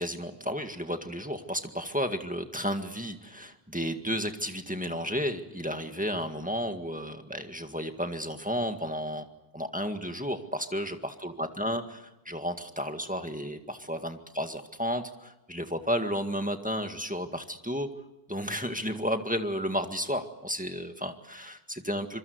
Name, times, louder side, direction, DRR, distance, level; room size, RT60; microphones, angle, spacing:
voice 1, 0.0-9.3 9.5-17.9 18.3-22.2, equal, 10° right, 6 dB, 1.8 m, -32 dB
26.5 x 23.5 x 8.0 m, 0.96 s
omnidirectional pair, 1.0 m